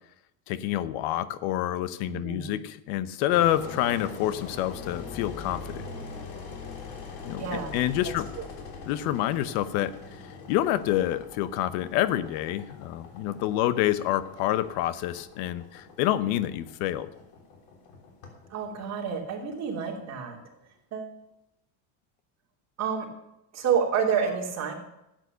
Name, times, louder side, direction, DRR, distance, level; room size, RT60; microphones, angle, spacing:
voice 1, 0.5-5.9 7.2-7.4 7.7-8.3 8.9-10.2 10.5-17.1, left 13 dB, 65° left, 15 dB, 0.9 m, -27 dB
voice 2, 2.1-2.6 7.4-7.8 18.5-20.4 20.9-21.1 22.8-23.1 23.5-24.7, right 7 dB, 35° right, 0 dB, 3.0 m, -29 dB
Engine, 3.3-20.2, left 4 dB, 85° left, 3.4 m, -43 dB
12.5 x 9.1 x 6.8 m, 0.86 s
cardioid pair, 150°, 46 cm